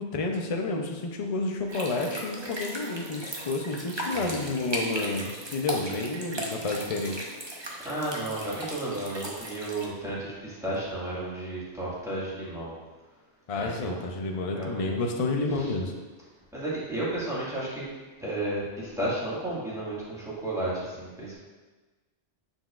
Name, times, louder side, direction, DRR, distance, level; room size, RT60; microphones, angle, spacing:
voice 1, 0.0-7.3 13.5-15.9, left 3 dB, 40° left, 2 dB, 0.6 m, -30 dB
sound 1, 1.7-9.9, right 1 dB, 25° right, 0.7 m, -37 dB
voice 2, 4.1-4.5 7.8-12.7 13.6-14.1 14.5-15.0 15.6-15.7 16.5-17.9 18.2-21.3, right 1 dB, 5° right, -9 dB, 1.8 m, -33 dB
7.0 x 5.8 x 2.4 m, 1.3 s
omnidirectional pair, 1.2 m